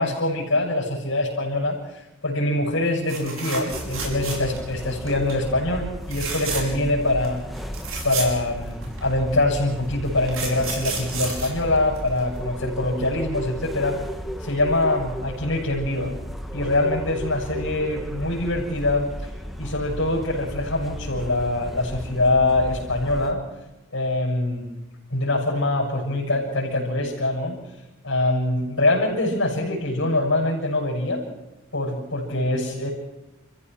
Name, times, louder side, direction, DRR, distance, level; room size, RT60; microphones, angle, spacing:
voice 1, 0.0-7.4 8.0-14.0 14.4-16.1 16.5-19.1 19.6-23.4 23.9-24.7 25.1-27.6 28.0-31.2 31.7-32.9, left 2 dB, 70° left, -4 dB, 6.8 m, -24 dB
sound 1, 3.1-4.7 5.0-5.4 6.0-6.9 7.2-7.3 7.6-9.1 9.8-12.4 14.3-14.4 14.7-14.8, right 4 dB, 75° right, 5.9 m, -32 dB
sound 2, 3.7-23.3, equal, ahead, 1.5 m, -34 dB
29.0 x 15.5 x 6.2 m, 0.98 s
head